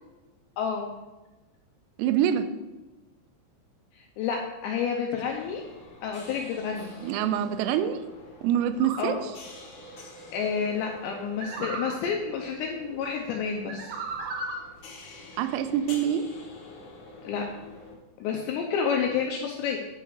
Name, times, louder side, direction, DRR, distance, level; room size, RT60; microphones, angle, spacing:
voice 1, 0.6-0.9 3.9-5.6 6.0-7.0 9.0-9.2 10.3-14.0 17.2-17.4 18.2-19.8, left 6 dB, 90° left, 1 dB, 2.6 m, -29 dB
voice 2, 2.0-2.5 7.0-8.0 8.4-9.1 15.4-16.3, right 10 dB, 90° right, 9 dB, 3.4 m, -25 dB
sound 1, 5.2-17.9, left 1 dB, 60° left, 2.4 m, -47 dB
sound 2, 8.8-9.1 11.4-12.0 13.7-14.7, right 3 dB, 65° right, 2.4 m, -35 dB
9.7 x 4.7 x 6.6 m, 1.1 s
omnidirectional pair, 6.0 m